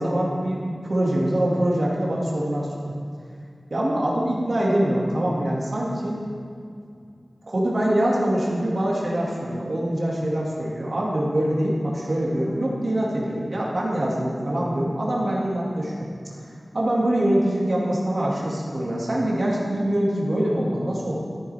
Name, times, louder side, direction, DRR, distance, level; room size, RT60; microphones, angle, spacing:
voice 1, 0.0-2.9 3.7-6.2 7.5-16.0 16.7-21.2, right 1 dB, 60° right, -4 dB, 2.0 m, -24 dB
13.5 x 9.8 x 3.4 m, 2.3 s
wide cardioid pair, 70°, 0 cm